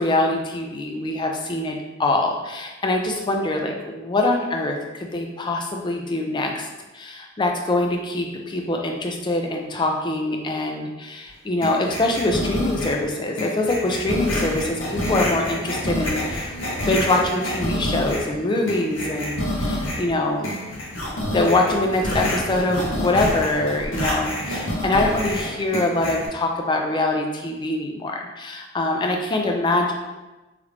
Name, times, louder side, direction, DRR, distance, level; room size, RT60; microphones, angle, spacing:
voice 1, 0.0-6.7 6.9-16.5 16.9-20.5 21.3-29.9, left 2 dB, 25° left, 2 dB, 0.4 m, -24 dB
sound 1, 11.6-13.0 13.4-18.3 18.7-20.1 20.4-26.3, left 1 dB, 70° left, 0.8 m, -27 dB
3.2 x 2.5 x 3.2 m, 1.1 s
head